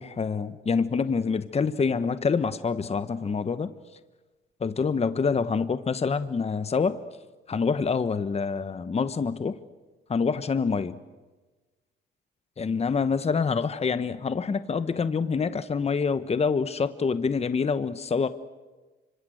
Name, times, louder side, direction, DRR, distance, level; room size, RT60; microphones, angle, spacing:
voice 1, 0.0-3.7 4.6-7.0 7.5-9.6 10.1-11.0 12.6-18.3, left 5 dB, 30° left, 12 dB, 1.1 m, -26 dB
25.5 x 25.5 x 8.0 m, 1.2 s
cardioid pair, 90°, 20 cm